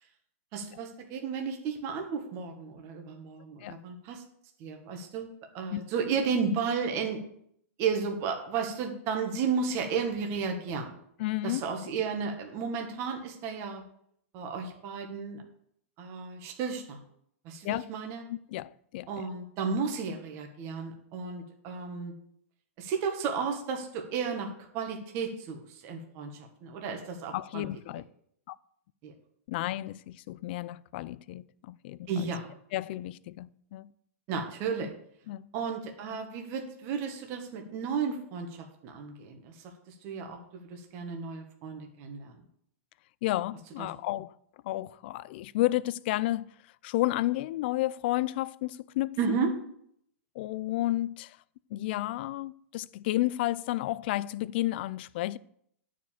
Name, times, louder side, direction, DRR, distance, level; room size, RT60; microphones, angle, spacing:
voice 1, 0.5-4.2 4.6-5.3 5.5-7.2 7.8-10.9 11.4-13.8 14.3-15.4 16.0-17.0 17.4-18.2 19.1-22.1 22.8-27.7 29.0-29.1 32.1-32.5 34.3-34.9 35.5-42.3 43.8-43.9 49.2-49.5, right 5 dB, 35° right, 1.4 m, -33 dB
voice 2, 11.2-11.6 17.6-17.9 18.3-19.1 27.3-28.1 28.5-28.6 29.5-32.3 32.7-33.9 35.3-35.5 43.2-44.4 44.6-46.5 46.8-49.2 50.4-51.4 51.7-55.4, left 16 dB, 45° left, 0.4 m, -32 dB
9.2 x 5.1 x 7.3 m
hypercardioid pair, 155°, 8 cm